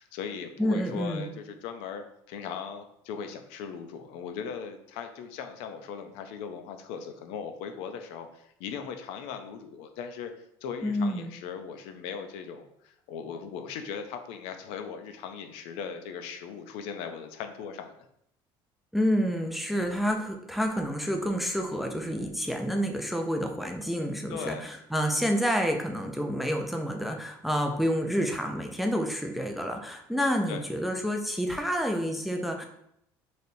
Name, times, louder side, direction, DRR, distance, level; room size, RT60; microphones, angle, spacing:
voice 1, 0.0-10.3 10.6-17.9 24.3-24.7 30.5-30.7, left 6 dB, 75° left, 7 dB, 0.5 m, -39 dB
voice 2, 0.6-1.3 10.8-11.3 18.9-32.7, equal, ahead, 3 dB, 0.3 m, -29 dB
4.1 x 3.3 x 2.7 m, 0.74 s
cardioid pair, 155°, 10 cm